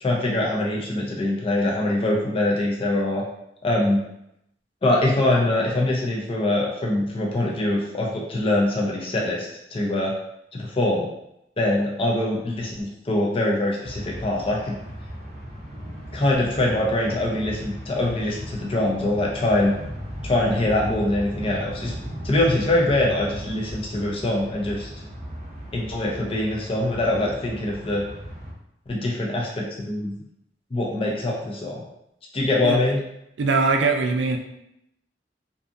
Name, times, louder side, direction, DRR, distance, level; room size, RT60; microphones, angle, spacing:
voice 1, 0.0-3.2 3.6-4.0 4.8-10.1 10.5-11.1 11.6-14.8 16.1-19.7 20.2-21.9 22.2-24.9 25.7-28.0 28.9-30.1 30.7-31.8 32.3-33.0, left 1 dB, 30° left, -2 dB, 0.4 m, -23 dB
sound 1, 13.8-28.5, equal, 40° right, 0.6 m, -36 dB
voice 2, 33.4-34.4, right 4 dB, 85° right, 4 dB, 0.4 m, -21 dB
2.6 x 2.4 x 2.5 m, 0.80 s
head